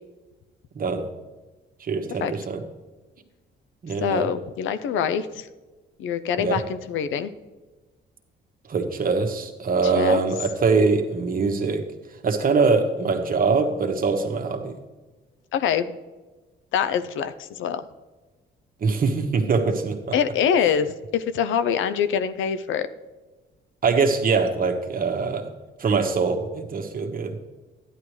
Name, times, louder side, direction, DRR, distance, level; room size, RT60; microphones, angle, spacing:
voice 1, 1.8-2.6 3.8-4.3 6.4-6.6 8.7-11.8 12.2-14.7 18.8-20.0 23.8-25.5 25.8-27.4, right 4 dB, 45° right, 5 dB, 1.3 m, -23 dB
voice 2, 4.0-5.5 6.0-7.3 9.8-10.2 15.5-15.9 16.7-17.8 20.1-22.9, left 8 dB, 85° left, 12 dB, 0.6 m, -24 dB
11.5 x 10.0 x 3.3 m, 1.2 s
cardioid pair, 90°, 20 cm